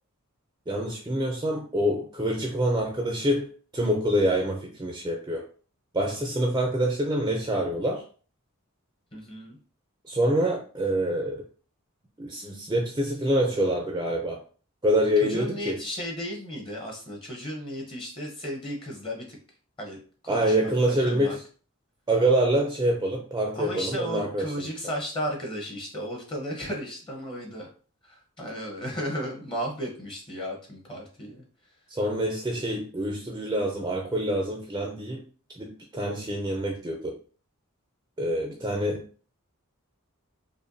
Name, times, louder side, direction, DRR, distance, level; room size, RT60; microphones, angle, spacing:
voice 1, 0.7-5.5 5.9-8.0 10.0-11.4 12.2-14.4 14.8-15.8 20.3-21.4 22.1-24.9 31.9-35.2 35.6-37.2 38.2-39.1, right 1 dB, 20° right, 2 dB, 0.4 m, -26 dB
voice 2, 9.1-9.6 15.2-19.4 19.8-20.0 20.3-21.4 23.5-27.7 28.0-31.4, equal, 25° left, 0 dB, 0.8 m, -34 dB
4.9 x 2.2 x 2.6 m, 0.40 s
head